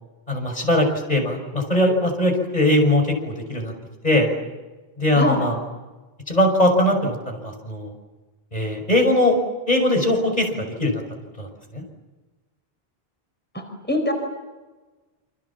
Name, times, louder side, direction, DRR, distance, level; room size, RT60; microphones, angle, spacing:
voice 1, 0.3-3.7 4.0-4.3 5.0-5.6 6.3-7.9 8.5-9.4 9.7-10.5 10.8-11.0 11.4-11.5 11.7-11.8, left 1 dB, 40° left, 3 dB, 6.1 m, -20 dB
voice 2, 13.5-14.1, left 1 dB, 10° left, 4 dB, 4.7 m, -23 dB
28.5 x 27.0 x 7.3 m, 1.2 s
omnidirectional pair, 1.0 m